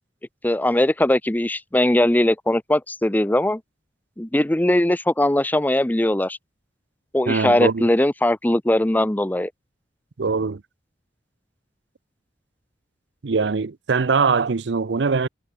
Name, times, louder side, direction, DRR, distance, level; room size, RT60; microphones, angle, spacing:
voice 1, 0.4-3.6 4.2-6.4 7.1-9.5, left 1 dB, 10° left, 0.6 m, -20 dB
voice 2, 7.3-7.9 10.2-10.6 13.2-15.3, right 4 dB, 85° right, 0.6 m, -22 dB
head